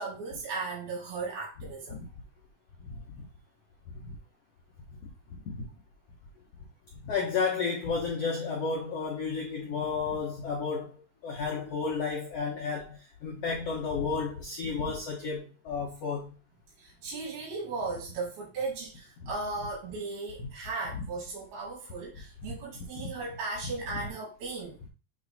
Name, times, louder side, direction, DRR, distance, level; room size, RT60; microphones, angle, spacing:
voice 1, 0.0-2.1 16.8-24.8, right 3 dB, 80° right, 4.2 m, -36 dB
voice 2, 2.8-3.2 3.9-4.2 5.4-5.7 7.0-16.3 19.2-19.3 20.4-20.5 20.9-21.1 22.9-23.1 23.9-24.0, left 5 dB, 80° left, 1.4 m, -32 dB
7.5 x 3.2 x 3.9 m
omnidirectional pair, 4.4 m